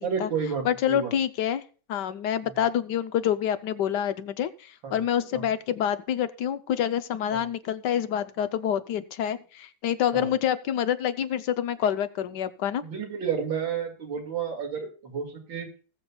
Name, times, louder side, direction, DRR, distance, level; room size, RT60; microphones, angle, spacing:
voice 1, 0.0-1.1 2.4-2.5 4.8-5.0 5.3-5.5 7.3-7.5 10.1-10.3 12.8-15.7, right 6 dB, 90° right, 3 dB, 2.9 m, -31 dB
voice 2, 0.6-1.6 1.9-12.8, left 10 dB, 70° left, 12 dB, 1.2 m, -27 dB
20.0 x 7.1 x 2.3 m, 0.37 s
omnidirectional pair, 2.1 m